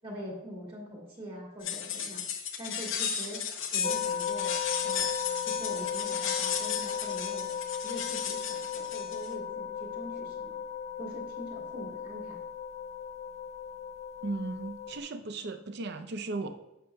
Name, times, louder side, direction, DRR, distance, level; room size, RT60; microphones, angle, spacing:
voice 1, 0.0-2.2 2.6-3.4 3.7-4.5 4.8-7.5 7.8-10.6 11.0-12.4, equal, 30° right, -3 dB, 2.1 m, -43 dB
sound 1, 1.6-9.3, left 8 dB, 75° left, 0.8 m, -34 dB
sound 2, 3.8-15.0, left 8 dB, 35° left, 0.6 m, -36 dB
voice 2, 14.2-16.5, right 3 dB, 60° right, 9 dB, 0.6 m, -36 dB
10.0 x 6.8 x 2.2 m, 0.92 s
head